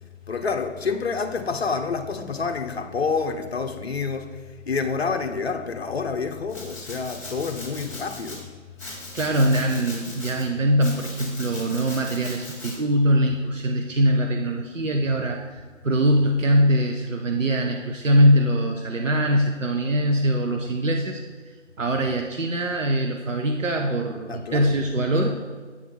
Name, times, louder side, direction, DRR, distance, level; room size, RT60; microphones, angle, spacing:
voice 1, 0.3-8.5 24.3-24.7, left 5 dB, 55° left, 0.8 m, -28 dB
Domestic sounds home sounds, 6.5-8.4 8.8-10.4 10.8-12.7, left 2 dB, 5° left, 2.0 m, -39 dB
voice 2, 8.8-25.4, equal, 80° right, 0.7 m, -22 dB
8.4 x 3.6 x 5.7 m
figure-of-eight pair, 150°, 38 cm